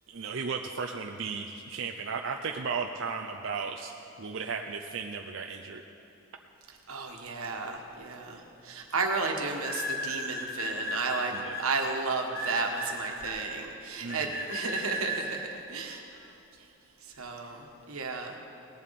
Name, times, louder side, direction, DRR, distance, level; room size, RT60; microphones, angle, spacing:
voice 1, 0.1-5.8 11.3-11.7 14.0-14.4, right 5 dB, 60° right, 2 dB, 0.5 m, -35 dB
voice 2, 6.9-8.4 8.6-11.3 11.6-15.4 15.7-16.0 17.2-18.3, right 4 dB, 90° right, 2 dB, 1.5 m, -33 dB
sound 1, 8.1-8.4 9.6-11.6 12.3-13.4 14.1-15.2, left 1 dB, 45° left, 2.6 m, -35 dB
18.5 x 11.0 x 4.2 m, 2.7 s
head